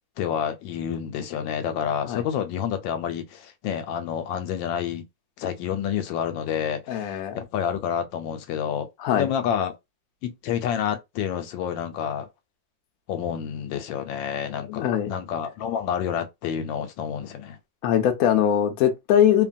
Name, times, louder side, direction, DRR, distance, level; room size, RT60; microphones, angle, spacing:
voice 1, 0.2-5.0 5.4-8.9 9.1-9.8 10.2-12.3 13.1-17.6, left 8 dB, 90° left, 1.3 m, -29 dB
voice 2, 6.9-7.4 9.0-9.3 14.5-15.1 17.8-19.5, left 9 dB, 75° left, 0.8 m, -22 dB
3.1 x 2.2 x 2.5 m
omnidirectional pair, 2.0 m